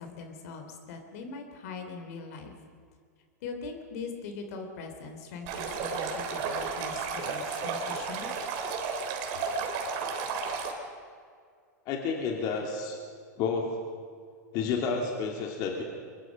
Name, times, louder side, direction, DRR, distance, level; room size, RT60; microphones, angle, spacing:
voice 1, 0.0-2.5 3.4-8.3, left 4 dB, 60° left, 5 dB, 3.3 m, -41 dB
Stream, 5.5-10.7, right 5 dB, 50° right, 3.5 m, -33 dB
voice 2, 11.9-13.0 13.4-13.7 14.5-15.8, left 5 dB, 45° left, 1 dB, 2.9 m, -30 dB
23.5 x 21.5 x 5.3 m, 2.2 s
hypercardioid pair, 110°, 9 cm